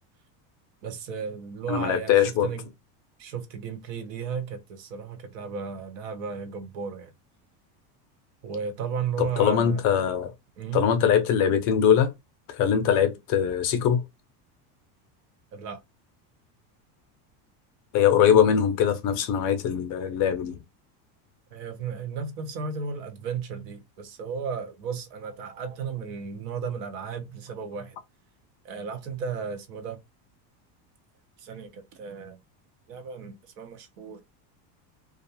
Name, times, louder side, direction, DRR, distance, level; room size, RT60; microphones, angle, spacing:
voice 1, 0.8-2.7 3.2-7.1 8.4-9.8 10.6-10.9 15.5-15.8 21.5-28.0 28.6-30.0 31.4-32.4 32.9-34.2, right 6 dB, 70° right, 0.9 m, -34 dB
voice 2, 1.7-2.5 9.2-10.3 10.7-12.1 12.5-14.0 17.9-20.6, left 8 dB, 40° left, 0.4 m, -22 dB
2.4 x 2.3 x 2.7 m
supercardioid pair, 135°, 49 cm